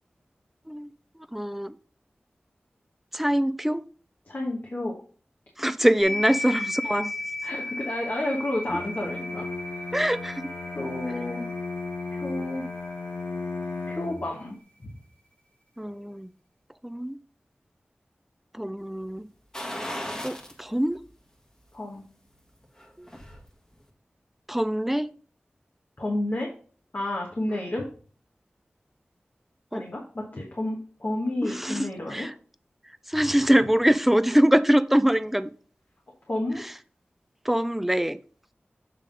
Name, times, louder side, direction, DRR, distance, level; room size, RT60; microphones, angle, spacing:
voice 1, 1.3-1.8 3.1-3.9 5.6-7.1 9.9-10.5 15.8-16.3 16.8-17.2 18.5-19.3 20.2-21.0 23.0-23.1 24.5-25.1 29.7-29.8 31.4-32.3 33.1-35.5 36.6-36.7 37.4-38.2, equal, 5° right, 0.4 m, -24 dB
voice 2, 4.3-4.9 6.1-6.2 7.4-9.5 9.7-9.9 10.7-11.5 12.1-12.6 13.9-14.5 14.8-14.9 21.7-22.0 26.0-26.5 26.9-27.9 29.7-32.3 36.3-36.6, left 1 dB, 50° left, 1.4 m, -31 dB
sound 1, 6.0-13.8, left 1 dB, 30° left, 1.3 m, -36 dB
Bowed string instrument, 8.7-14.4, left 4 dB, 80° left, 1.2 m, -35 dB
sound 2, 19.5-20.6 21.0-21.1 22.6-23.4 23.8-23.9, equal, 15° left, 1.5 m, -36 dB
7.5 x 3.6 x 5.2 m
wide cardioid pair, 65°, 4 cm